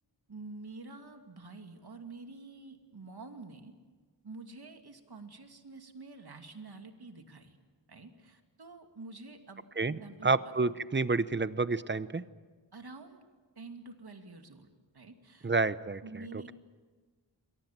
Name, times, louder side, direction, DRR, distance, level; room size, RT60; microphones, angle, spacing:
voice 1, 0.3-3.7 4.2-7.6 7.9-10.4 10.6-10.7 12.7-13.2 13.6-14.7 14.9-15.5 16.0-16.5, right 3 dB, 60° right, 6 dB, 2.6 m, -48 dB
voice 2, 9.8-12.2 15.4-16.0, right 3 dB, 25° right, 15 dB, 0.8 m, -29 dB
28.5 x 22.5 x 7.5 m, 1.4 s
wide cardioid pair, 95°, 44 cm